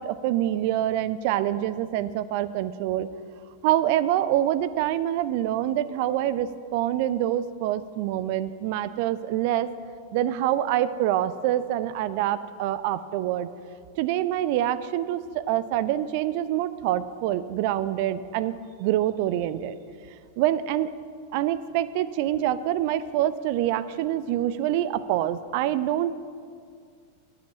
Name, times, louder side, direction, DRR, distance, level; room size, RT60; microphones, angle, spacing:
voice 1, 0.0-3.1 3.6-9.7 10.1-13.5 14.0-18.5 18.8-19.7 20.4-20.9 21.3-26.1, right 12 dB, 45° right, 14 dB, 0.4 m, -26 dB
10.0 x 7.7 x 6.2 m, 2.1 s
figure-of-eight pair, 90°, 0 cm